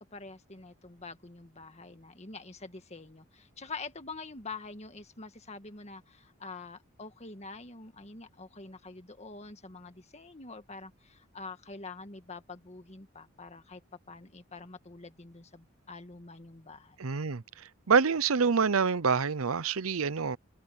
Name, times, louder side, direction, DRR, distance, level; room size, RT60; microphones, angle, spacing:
voice 1, 0.0-13.8 14.1-17.0, left 3 dB, 30° left, 1.8 m, -46 dB
voice 2, 17.0-17.4 17.9-20.4, right 5 dB, 90° right, 0.7 m, -26 dB
head